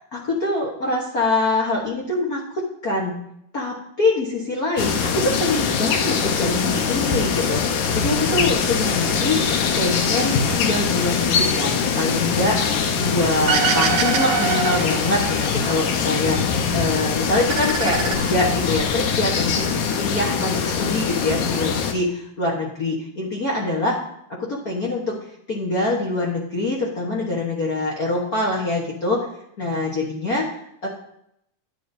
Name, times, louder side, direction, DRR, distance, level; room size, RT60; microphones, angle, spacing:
voice 1, 0.1-3.2 3.5-9.5 9.8-19.7 20.0-24.0 24.3-25.2 25.5-29.2 29.6-30.6 30.8-30.9, left 2 dB, 60° left, -3 dB, 0.9 m, -24 dB
sound 1, 4.8-21.9, left 6 dB, 85° left, 2.4 m, -23 dB
sound 2, 13.5-15.8 16.2-17.0 17.3-18.8, right 6 dB, 75° right, 2.4 m, -25 dB
11.0 x 9.3 x 2.7 m, 0.74 s
omnidirectional pair, 3.5 m